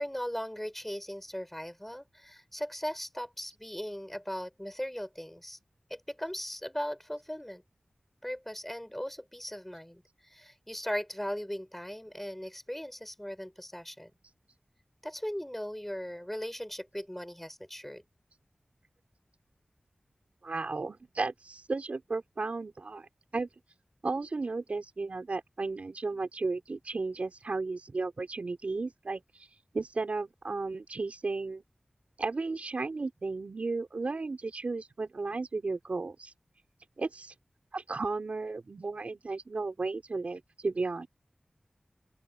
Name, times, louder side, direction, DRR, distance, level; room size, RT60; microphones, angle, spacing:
voice 1, 0.0-5.6 5.9-7.6 8.2-14.1 15.0-18.0, equal, 5° left, 5.3 m, -38 dB
voice 2, 20.4-23.5 24.0-29.5 29.7-31.6 32.2-36.3 37.0-37.3 37.7-41.1, right 3 dB, 70° right, 5.2 m, -34 dB
open air
wide cardioid pair, 65°, 2 cm